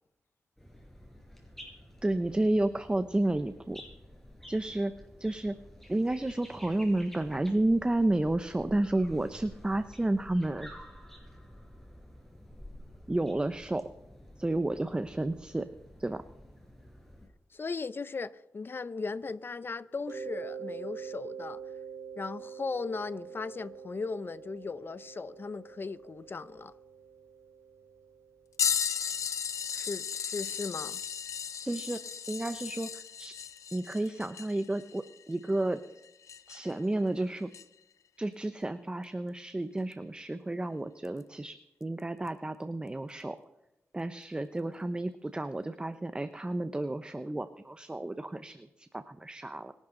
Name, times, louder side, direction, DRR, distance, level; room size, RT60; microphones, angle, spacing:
sound 1, 0.6-17.3, equal, 5° left, 5.0 m, -51 dB
voice 1, 2.0-3.8 4.5-4.9 5.2-5.6 5.9-10.7 13.1-13.9 14.4-15.7 16.0-16.2 31.6-32.0 32.3-33.4 33.7-35.8 36.5-37.5 38.2-43.4 43.9-49.7, right 1 dB, 20° right, 0.8 m, -31 dB
voice 2, 17.2-21.6 22.2-26.7 29.7-31.0, left 4 dB, 45° left, 0.8 m, -37 dB
Mallet percussion, 20.1-28.7, right 6 dB, 65° right, 3.2 m, -45 dB
sound 2, 28.6-36.8 37.5-37.6 39.9-40.0 41.1-41.2 42.3-42.4, left 8 dB, 90° left, 0.7 m, -35 dB
25.0 x 12.0 x 3.9 m
cardioid pair, 70°, 5 cm